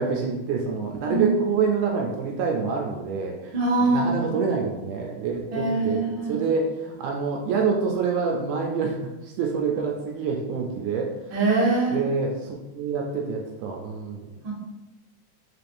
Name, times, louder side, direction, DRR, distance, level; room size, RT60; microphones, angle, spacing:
voice 1, 0.0-3.5 3.8-6.0 6.3-11.1 11.9-14.3, right 5 dB, 80° right, 0 dB, 1.9 m, -27 dB
voice 2, 3.5-4.3 5.5-6.4 11.3-12.0 14.4-14.5, right 3 dB, 55° right, -6 dB, 1.5 m, -23 dB
4.9 x 3.2 x 2.5 m, 1.0 s
omnidirectional pair, 3.5 m